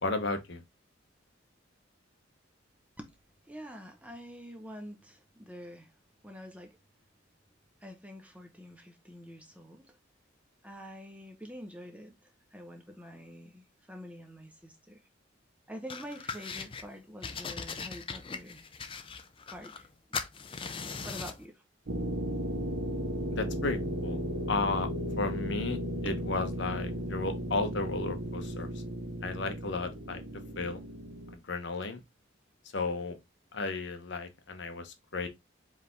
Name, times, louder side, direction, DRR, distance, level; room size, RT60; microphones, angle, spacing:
voice 1, 0.0-0.6 23.3-24.2 24.5-24.9 25.2-28.8 29.2-30.2 30.6-30.8 31.3-32.0 32.7-33.2 33.5-35.3, left 3 dB, 60° left, 0.9 m, -34 dB
voice 2, 3.5-5.9 6.2-6.8 7.8-10.0 10.6-15.0 15.7-18.6 19.5-19.9 21.0-21.6, equal, 5° right, 0.7 m, -46 dB
sound 1, 15.9-16.8 17.2-19.9 20.1-21.4, left 5 dB, 25° left, 0.5 m, -39 dB
sound 2, 21.9-31.4, equal, 55° right, 0.8 m, -35 dB
4.9 x 3.4 x 3.0 m
head